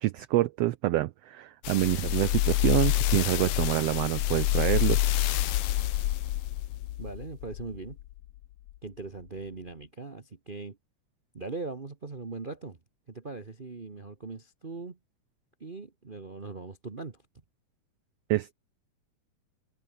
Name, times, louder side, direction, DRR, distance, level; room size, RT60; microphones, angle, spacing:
voice 1, 0.0-5.0 18.3-18.5, right 16 dB, 85° right, 1.4 m, -27 dB
sound 1, 1.6-8.1 8.7-8.8, left 14 dB, 70° left, 1.5 m, -27 dB
voice 2, 7.0-8.0 8.8-10.8 11.3-12.8 13.1-15.0 15.6-17.2, right 3 dB, 65° right, 0.5 m, -40 dB
omnidirectional pair, 3.6 m